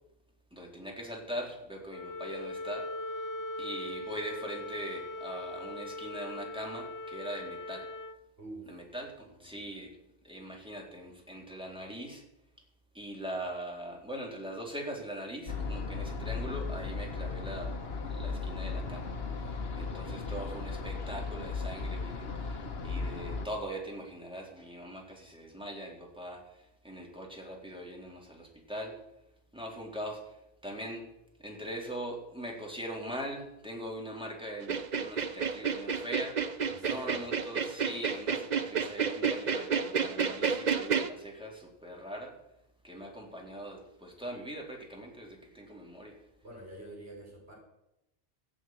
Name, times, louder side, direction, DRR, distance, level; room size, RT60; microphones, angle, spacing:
voice 1, 0.5-2.9 3.6-7.9 8.6-10.0 10.2-12.2 12.9-17.7 18.1-19.1 19.8-29.0 29.5-30.4 30.6-31.1 31.4-36.4 36.8-42.3 42.8-46.2, right 1 dB, 5° right, -1 dB, 3.5 m, -41 dB
Wind instrument woodwind instrument, 1.9-8.2, left 1 dB, 30° left, 0.3 m, -40 dB
voice 2, 9.0-9.7 19.6-19.7 36.7-37.3 46.4-47.5, right 1 dB, 70° right, -2 dB, 5.8 m, -48 dB
sound 1, 15.5-23.5, left 4 dB, 65° left, 1.4 m, -36 dB
sound 2, 34.6-41.1, right 6 dB, 45° right, 0.9 m, -30 dB
14.0 x 8.1 x 9.1 m, 0.88 s
omnidirectional pair, 1.1 m